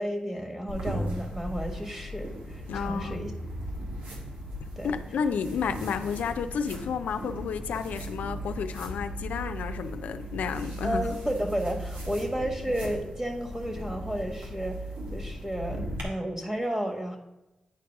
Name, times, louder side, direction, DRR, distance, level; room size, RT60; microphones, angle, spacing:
voice 1, 0.0-3.3 4.8-4.9 10.8-14.8 15.1-17.2, right 1 dB, 20° right, 3 dB, 1.5 m, -32 dB
sound 1, 0.7-16.0, equal, 90° right, 1.4 m, -37 dB
voice 2, 2.7-3.3 4.8-11.2, left 6 dB, 85° left, 8 dB, 0.4 m, -31 dB
9.4 x 4.6 x 3.5 m, 1.0 s
cardioid pair, 50°, 3 cm